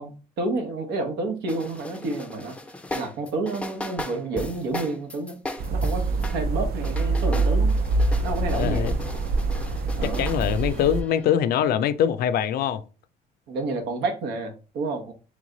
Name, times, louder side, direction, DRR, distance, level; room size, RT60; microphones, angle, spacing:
voice 1, 0.0-2.6 2.9-5.4 5.7-7.7 8.2-8.9 10.0-10.3 13.5-15.1, right 3 dB, 85° right, 1.0 m, -30 dB
sound 1, 1.5-6.4 6.7-11.3, left 1 dB, 5° left, 0.5 m, -37 dB
sound 2, 5.6-11.0, right 3 dB, 60° right, 0.6 m, -25 dB
voice 2, 8.6-9.0 10.0-12.8, left 9 dB, 65° left, 0.4 m, -23 dB
3.4 x 3.1 x 3.8 m
cardioid pair, 110°, 17 cm